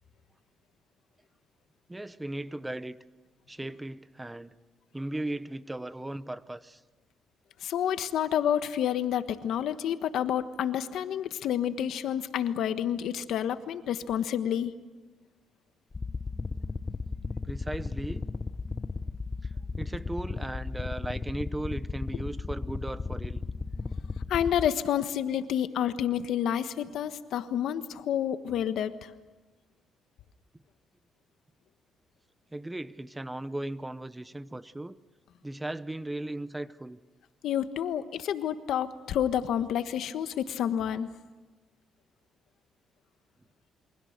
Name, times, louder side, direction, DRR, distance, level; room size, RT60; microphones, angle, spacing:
voice 1, 1.9-3.0 3.5-4.6 4.9-6.8 17.4-18.2 19.4-19.5 19.8-23.4 32.5-35.0 35.4-37.0, right 1 dB, 10° right, 0.9 m, -37 dB
voice 2, 7.6-14.7 24.3-29.1 37.4-41.1, left 9 dB, 75° left, 1.3 m, -29 dB
Hum with attitude, 15.9-24.7, left 4 dB, 30° left, 0.9 m, -35 dB
28.5 x 24.5 x 6.7 m
cardioid pair, 90°, 0 cm